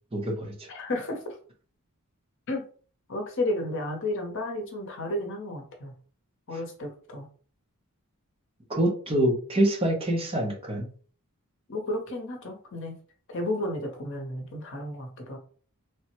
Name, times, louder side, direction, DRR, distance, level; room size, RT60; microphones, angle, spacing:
voice 1, 0.1-0.7 8.7-10.9, right 1 dB, 25° right, 0 dB, 0.7 m, -26 dB
voice 2, 0.7-1.4 2.5-2.6 3.1-5.9 6.5-7.3 11.7-12.9 13.3-15.4, left 1 dB, 60° left, 2 dB, 0.8 m, -32 dB
3.2 x 2.1 x 2.9 m, 0.43 s
head